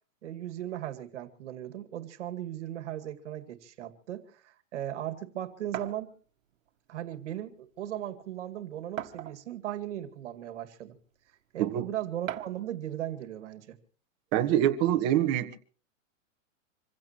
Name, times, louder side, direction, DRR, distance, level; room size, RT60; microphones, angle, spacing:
voice 1, 0.2-6.1 6.9-11.0 11.5-13.8, right 12 dB, 60° right, 2.2 m, -37 dB
sound 1, 5.7-6.0 7.1-7.2 7.7-7.8 9.0-9.6 10.4-10.5 12.3-12.7, right 11 dB, 85° right, 1.5 m, -38 dB
voice 2, 14.3-15.6, right 12 dB, 25° right, 1.5 m, -25 dB
26.5 x 16.0 x 3.0 m
supercardioid pair, 170°, 39 cm